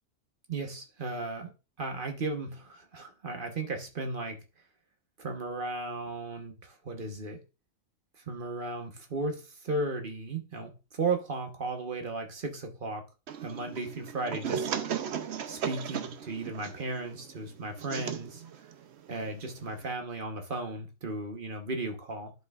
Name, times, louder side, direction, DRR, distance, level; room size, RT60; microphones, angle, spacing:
voice 1, 0.5-1.5 1.8-4.4 5.2-7.4 8.3-13.0 13.4-14.7 15.5-18.4 19.1-22.3, right 3 dB, 40° right, 1.2 m, -35 dB
sound 1, 13.3-19.9, right 8 dB, 60° right, 0.9 m, -37 dB
11.5 x 5.0 x 2.4 m
omnidirectional pair, 1.4 m